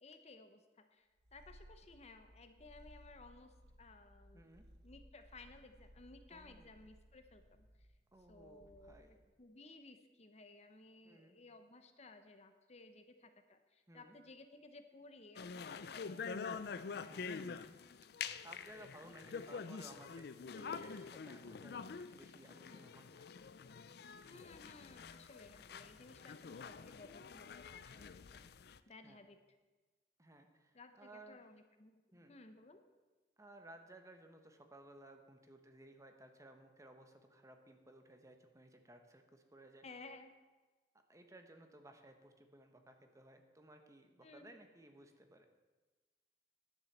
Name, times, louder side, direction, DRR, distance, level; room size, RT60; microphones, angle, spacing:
voice 1, 0.0-4.4 4.8-7.9 8.3-9.0 9.4-16.6 19.0-19.1 24.3-28.5 28.9-29.4 30.7-32.0 32.3-32.8 39.8-40.3 44.2-44.6, left 3 dB, 40° left, 8 dB, 0.8 m, -58 dB
Purr, 1.2-9.3, equal, 65° right, 1.2 m, -62 dB
voice 2, 4.3-4.7 6.3-6.7 8.1-9.2 11.0-11.4 13.9-14.2 16.9-17.4 18.4-23.3 27.2-27.3 29.0-29.2 30.2-31.5 32.1-32.4 33.4-39.8 41.1-45.5, right 1 dB, 20° right, 5 dB, 1.0 m, -59 dB
sound 1, 15.4-28.8, left 5 dB, 65° left, 0.5 m, -47 dB
11.0 x 7.2 x 7.2 m, 1.2 s
head